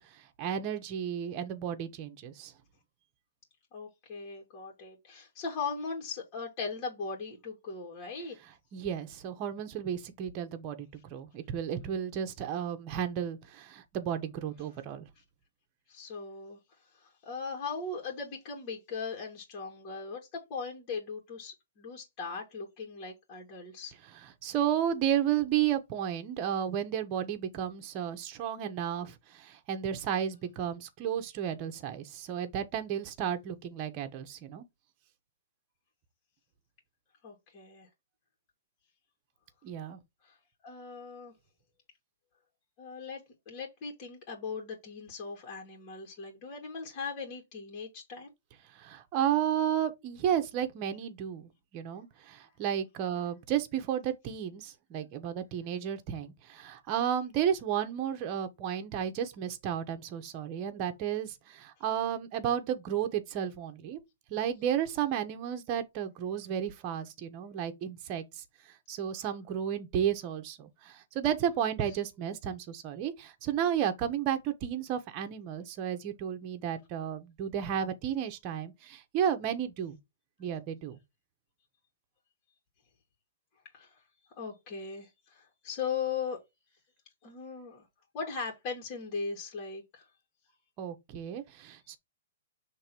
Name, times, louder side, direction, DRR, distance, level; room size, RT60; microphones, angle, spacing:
voice 1, 0.4-2.5 8.7-15.0 24.4-34.7 39.6-40.0 48.7-64.0 64.3-68.4 68.9-80.0 80.4-81.0 90.8-92.0, right 9 dB, 35° right, 1.2 m, -33 dB
voice 2, 3.7-8.4 15.9-16.6 16.9-23.9 37.2-37.9 40.2-40.4 40.6-41.3 42.8-48.3 83.7-83.9 84.4-86.4 87.2-87.9 88.1-90.1, left 5 dB, 35° left, 2.3 m, -39 dB
6.4 x 3.4 x 4.6 m
hypercardioid pair, 130°, 0 cm